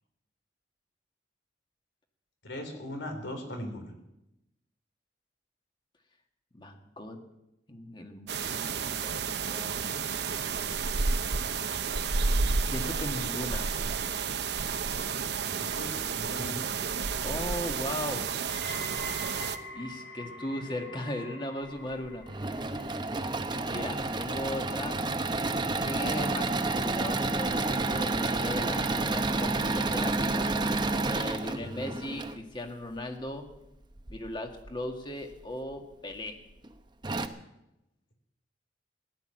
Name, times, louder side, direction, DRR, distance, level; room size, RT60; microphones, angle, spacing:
voice 1, 2.4-3.9 15.5-16.6, left 1 dB, 90° left, 5 dB, 3.5 m, -39 dB
voice 2, 6.5-7.2 7.7-9.9 12.6-13.7 17.2-18.2 19.7-22.3 23.7-25.0 25.8-30.5 31.1-33.4 34.1-36.4, left 1 dB, 25° left, 4 dB, 1.7 m, -37 dB
light forest sounds, 8.3-19.6, right 5 dB, 65° right, 0.8 m, -31 dB
sound 1, 18.5-29.6 29.9-30.4 31.1-31.2, left 1 dB, 60° left, 6.0 m, -47 dB
Engine / Mechanisms, 22.1-32.4 34.0-34.7 35.3-35.4 35.7-35.8 36.6-36.7 37.0-37.3, right 2 dB, 25° right, 0.8 m, -30 dB
16.0 x 11.0 x 7.6 m, 0.91 s
head